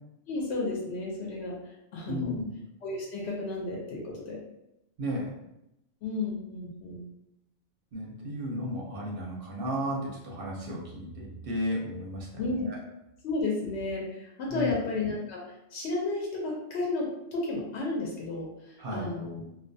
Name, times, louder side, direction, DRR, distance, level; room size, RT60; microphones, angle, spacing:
voice 1, 0.3-1.5 1.9-2.4 2.8-4.4 6.0-7.0 12.4-12.7 13.2-15.4 15.7-19.4, left 2 dB, 65° left, -2 dB, 0.8 m, -32 dB
voice 2, 2.1-2.5 5.0-5.3 7.9-12.8 14.5-14.8 18.8-19.1, equal, 60° right, -3 dB, 0.7 m, -34 dB
2.3 x 2.2 x 2.6 m, 0.85 s
omnidirectional pair, 1.3 m